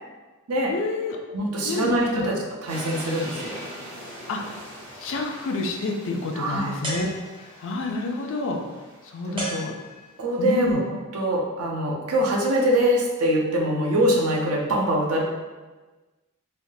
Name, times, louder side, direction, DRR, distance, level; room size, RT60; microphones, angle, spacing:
voice 1, 0.7-1.2 1.6-2.3 4.3-4.6 5.0-7.1 7.6-8.6 9.0-9.7 10.4-10.8, left 3 dB, 60° left, 2 dB, 0.4 m, -28 dB
voice 2, 1.3-3.6 6.3-6.7 9.2-9.5 10.2-10.8 11.1-15.2, equal, 75° right, -1 dB, 0.6 m, -23 dB
sound 1, 2.7-9.8, equal, 55° right, 1.4 m, -41 dB
sound 2, 6.8-7.7 9.4-10.3, right 1 dB, 25° right, 0.6 m, -34 dB
3.3 x 2.2 x 2.6 m, 1.2 s
head